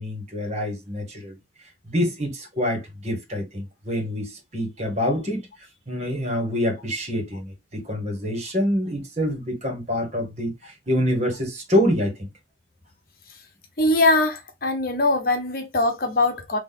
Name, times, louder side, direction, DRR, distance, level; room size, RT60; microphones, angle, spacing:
voice 1, 0.0-1.4 1.9-5.5 5.9-12.3, equal, 40° right, 1.9 m, -26 dB
voice 2, 13.8-16.6, left 2 dB, 50° left, 1.0 m, -21 dB
4.0 x 3.0 x 3.8 m
head